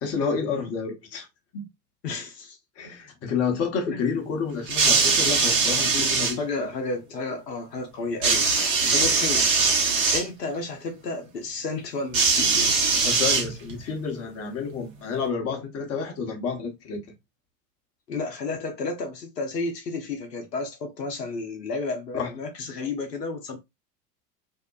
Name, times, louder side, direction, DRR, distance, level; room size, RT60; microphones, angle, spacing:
voice 1, 0.0-1.3 1.5-1.7 2.8-6.4 8.8-9.0 13.0-17.0 22.1-22.3, left 5 dB, 30° left, 1.0 m, -29 dB
voice 2, 2.0-2.6 3.9-4.0 6.1-9.8 10.1-13.1 18.1-23.6, left 3 dB, 80° left, 0.8 m, -32 dB
sound 1, 4.7-6.3 8.2-10.3 12.1-13.8 14.8-14.9, right 4 dB, 60° right, 1.0 m, -21 dB
2.8 x 2.1 x 2.3 m
figure-of-eight pair, 85°, 48 cm